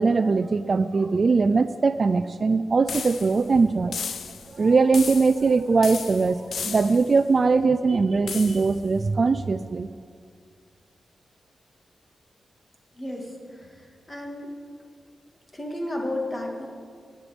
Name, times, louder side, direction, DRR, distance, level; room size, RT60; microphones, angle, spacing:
voice 1, 0.0-4.0 4.5-9.9, right 4 dB, 40° right, 12 dB, 0.3 m, -21 dB
sound 1, 2.9-3.5 3.9-4.6 4.9-5.5 5.8-7.2 8.3-8.8, left 6 dB, 80° left, 0.6 m, -34 dB
voice 2, 13.0-14.5 15.5-16.7, left 1 dB, 20° left, 1 dB, 2.1 m, -33 dB
16.0 x 10.0 x 5.2 m, 2.1 s
wide cardioid pair, 115°, 0 cm